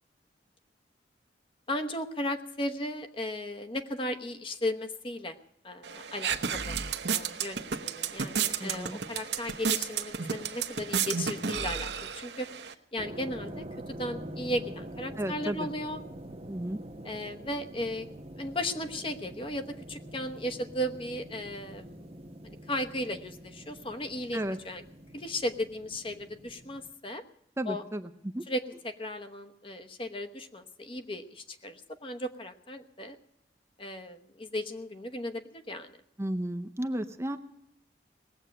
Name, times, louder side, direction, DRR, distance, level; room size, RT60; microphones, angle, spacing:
voice 1, 1.7-5.4 5.6-6.8 7.1-12.5 12.9-16.0 17.0-18.1 18.4-22.0 22.4-24.8 25.1-27.2 27.7-27.8 28.5-33.2 33.8-36.0, left 1 dB, 30° left, 8 dB, 1.1 m, -36 dB
sound 1, 5.8-12.7, right 7 dB, 75° right, 1.0 m, -32 dB
voice 2, 8.6-9.0 15.2-15.7 16.5-16.8 24.3-24.6 27.6-28.4 36.2-37.4, right 1 dB, 15° right, 7 dB, 0.6 m, -33 dB
sound 2, 13.0-26.9, right 1 dB, 35° right, 1.0 m, -45 dB
19.0 x 8.0 x 8.9 m, 0.73 s
head